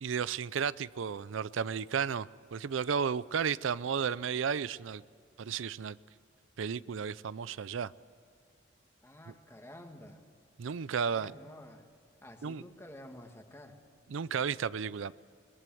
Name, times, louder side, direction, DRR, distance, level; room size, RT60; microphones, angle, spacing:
voice 1, 0.0-5.0 5.4-6.0 6.6-7.9 10.6-11.3 12.4-12.6 14.1-15.1, right 6 dB, 85° right, 0.4 m, -33 dB
voice 2, 9.0-10.2 11.1-11.9 12.2-13.8, left 1 dB, 15° left, 1.8 m, -50 dB
22.5 x 21.0 x 7.8 m
head